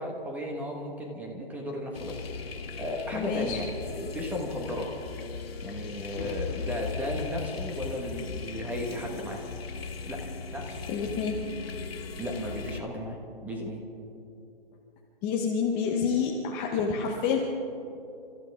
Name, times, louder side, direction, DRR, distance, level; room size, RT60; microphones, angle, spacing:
voice 1, 0.0-3.7 4.0-4.9 5.6-9.4 10.1-10.2 10.5-10.8 12.2-13.2 13.4-13.8, left 1 dB, 5° right, 0 dB, 1.3 m, -35 dB
sound 1, 1.9-12.8, left 4 dB, 85° left, 1.9 m, -39 dB
voice 2, 3.1-3.6 10.9-11.5 15.2-17.5, left 6 dB, 15° left, 0 dB, 0.8 m, -28 dB
sound 2, 6.2-9.6, left 6 dB, 55° left, 0.7 m, -38 dB
28.5 x 14.0 x 3.6 m, 2.8 s
hypercardioid pair, 155°, 30 cm